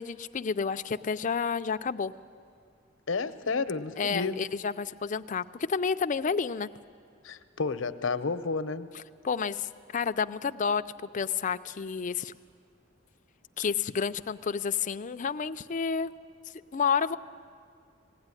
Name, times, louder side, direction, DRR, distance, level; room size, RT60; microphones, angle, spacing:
voice 1, 0.0-2.1 4.0-6.7 8.9-10.8 11.1-12.3 13.6-16.1 16.7-17.2, left 6 dB, 40° left, 10 dB, 0.5 m, -30 dB
voice 2, 3.1-4.4 7.2-8.9, left 4 dB, 85° left, 10 dB, 0.8 m, -31 dB
19.5 x 16.5 x 9.8 m, 2.2 s
head